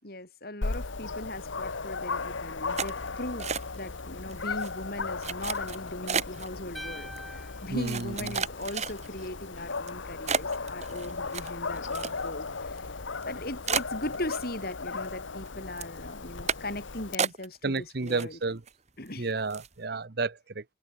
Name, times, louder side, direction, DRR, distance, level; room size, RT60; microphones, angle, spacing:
voice 1, 0.0-3.5 3.8-12.8 13.2-18.4 19.0-19.3, left 1 dB, 50° left, 7.7 m, -39 dB
Dog, 0.6-17.2, left 4 dB, 85° left, 1.4 m, -36 dB
sound 1, 2.8-4.0 4.3-4.7 5.2-6.5 7.2-7.3 7.8-9.3 9.8-9.9 10.3-12.5 12.8-12.9 13.2-13.3 13.7-14.7 15.0-15.5 15.8-16.0 16.5-16.8 17.2-17.8 18.1-18.7 19.1-19.2 19.5-19.8, right 6 dB, 35° right, 3.3 m, -32 dB
sound 2, 6.7-9.0, equal, ahead, 4.3 m, -45 dB
voice 2, 7.7-8.4 17.6-18.6 19.2-20.6, right 3 dB, 55° right, 0.9 m, -31 dB
head